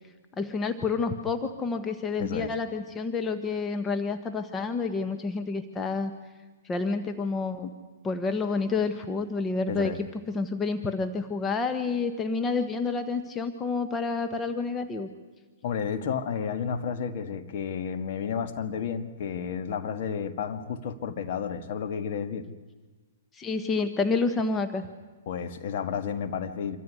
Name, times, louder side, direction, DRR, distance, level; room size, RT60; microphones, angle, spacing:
voice 1, 0.4-6.1 6.6-7.7 8.0-15.1 23.3-24.9, left 4 dB, 15° left, 8 dB, 1.3 m, -29 dB
voice 2, 2.2-2.5 9.7-10.0 15.6-22.5 25.3-26.8, left 7 dB, 50° left, 9 dB, 1.9 m, -31 dB
26.5 x 14.0 x 9.6 m, 1.3 s
hypercardioid pair, 135°, 0 cm